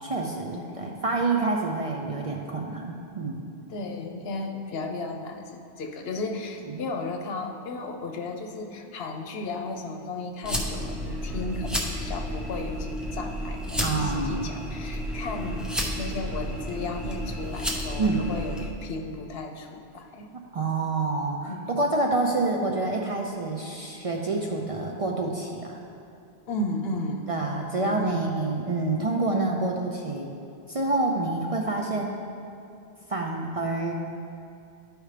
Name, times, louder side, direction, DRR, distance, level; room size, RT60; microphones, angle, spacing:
voice 1, 0.0-3.4 6.7-6.8 13.8-14.5 18.0-18.3 20.5-25.8 27.3-30.3 30.7-32.1 33.1-34.0, right 3 dB, 45° right, 0 dB, 0.5 m, -27 dB
voice 2, 0.5-1.0 3.7-20.3 21.5-21.7 26.5-28.2, left 2 dB, 70° left, 4 dB, 0.9 m, -35 dB
sound 1, 10.4-18.7, equal, ahead, 0.6 m, -32 dB
12.0 x 4.8 x 3.3 m, 2.7 s
omnidirectional pair, 1.1 m